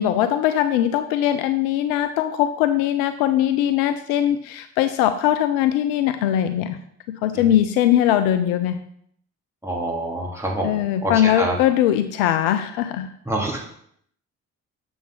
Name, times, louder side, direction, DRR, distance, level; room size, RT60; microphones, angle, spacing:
voice 1, 0.0-6.8 7.1-8.8 10.6-13.1, left 11 dB, 75° left, 10 dB, 0.5 m, -21 dB
voice 2, 9.6-11.6 13.3-13.7, right 1 dB, 5° right, -2 dB, 2.9 m, -27 dB
7.1 x 4.6 x 5.5 m, 0.68 s
hypercardioid pair, 45°, 40 cm